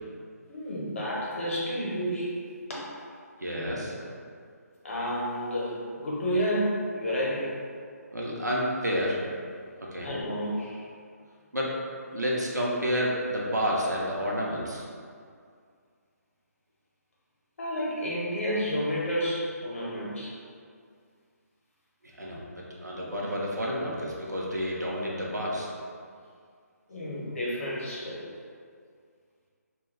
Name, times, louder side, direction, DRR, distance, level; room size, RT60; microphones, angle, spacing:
voice 1, 0.5-2.3 2.7-2.9 4.8-7.6 10.0-10.8 17.6-20.3 26.9-28.3, equal, 50° left, -5 dB, 0.8 m, -30 dB
voice 2, 3.4-4.1 8.1-9.2 9.9-10.1 11.5-11.7 12.1-14.8 22.2-25.7, equal, 85° right, -4 dB, 0.7 m, -30 dB
2.3 x 2.2 x 3.3 m, 2.2 s
figure-of-eight pair, 145°, 9 cm